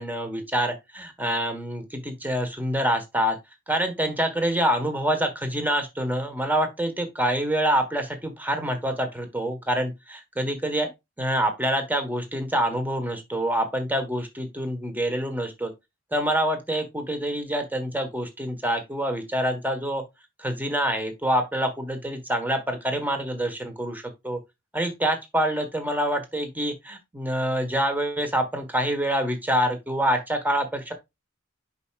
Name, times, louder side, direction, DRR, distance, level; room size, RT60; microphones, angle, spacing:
voice 1, 0.0-3.4 3.7-9.9 10.4-10.9 11.2-15.7 16.1-20.0 20.4-24.4 24.7-30.9, right 1 dB, 10° right, 1.4 m, -26 dB
8.1 x 5.8 x 2.4 m
head